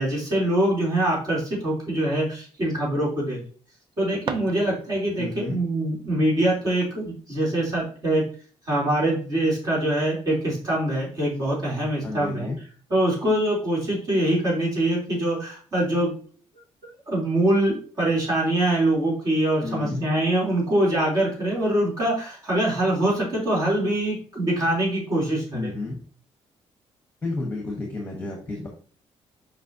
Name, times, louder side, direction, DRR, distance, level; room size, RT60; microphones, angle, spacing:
voice 1, 0.0-3.4 4.0-8.2 8.6-12.5 12.9-16.1 17.1-25.7, right 1 dB, 35° right, -4 dB, 3.4 m, -24 dB
sound 1, 4.1-5.2, right 6 dB, 55° right, 0.6 m, -36 dB
voice 2, 5.2-5.6 12.0-12.6 19.6-20.0 25.5-26.0 27.2-28.7, left 2 dB, 15° left, 0 dB, 1.2 m, -31 dB
7.3 x 5.1 x 2.8 m, 0.41 s
cardioid pair, 175°, 10 cm